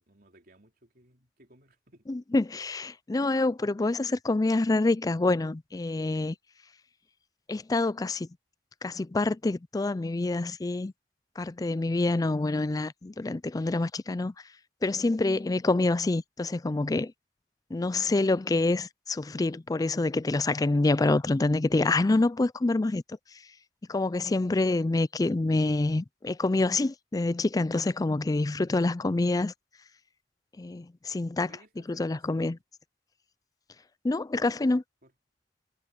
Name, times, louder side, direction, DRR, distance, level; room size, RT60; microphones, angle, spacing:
voice 1, 0.0-2.1 31.5-32.6 35.0-35.1, right 1 dB, 55° right, 4.1 m, -59 dB
voice 2, 2.1-6.4 7.5-8.3 8.8-10.9 11.4-14.3 14.8-17.1 17.7-23.0 23.9-29.5 30.6-31.5 31.9-32.6 34.0-34.8, left 2 dB, 20° left, 0.4 m, -26 dB
head